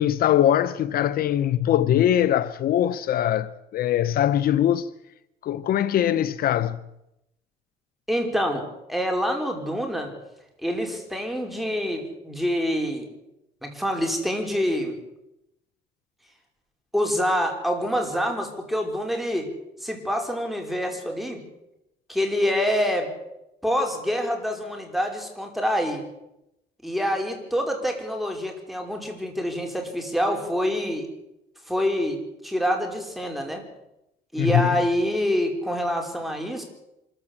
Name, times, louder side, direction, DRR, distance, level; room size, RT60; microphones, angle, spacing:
voice 1, 0.0-4.9 5.4-6.8 34.4-34.7, left 11 dB, 60° left, 0.8 m, -22 dB
voice 2, 8.1-10.1 10.6-13.1 13.6-15.0 16.9-19.5 19.8-21.4 22.1-23.1 23.6-26.0 26.8-31.1 31.7-33.6 34.3-36.6, equal, ahead, 5.1 m, -26 dB
25.0 x 14.5 x 8.5 m
cardioid pair, 110°, 17 cm